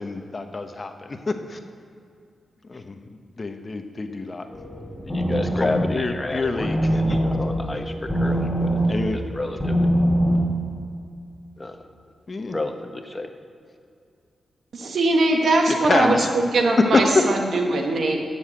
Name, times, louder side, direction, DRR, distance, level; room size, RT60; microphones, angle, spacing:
voice 1, 0.0-1.6 2.6-4.5 5.5-7.2 8.9-9.2 12.3-12.6 15.7-16.3 16.9-17.0, left 3 dB, 45° left, 6 dB, 1.1 m, -27 dB
sound 1, 4.5-10.4, equal, 5° right, 3.5 m, -24 dB
voice 2, 5.1-6.7 6.9-8.8 9.3-9.9 11.6-11.8 12.5-13.3, left 2 dB, 30° left, 5 dB, 1.4 m, -30 dB
voice 3, 14.7-18.2, right 2 dB, 75° right, 2 dB, 1.7 m, -21 dB
11.5 x 7.3 x 8.3 m, 2.4 s
supercardioid pair, 45°, 0 cm